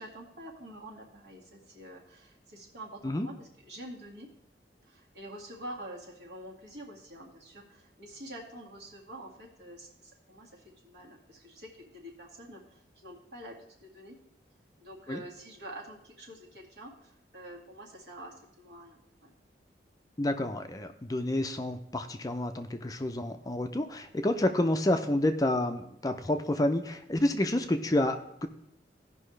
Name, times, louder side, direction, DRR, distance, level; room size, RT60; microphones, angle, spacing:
voice 1, 0.0-4.3 4.8-14.2 14.8-19.3, right 1 dB, 70° right, -2 dB, 2.0 m, -47 dB
voice 2, 20.2-28.5, left 1 dB, 20° left, 7 dB, 0.4 m, -29 dB
16.0 x 5.5 x 3.2 m, 0.77 s
head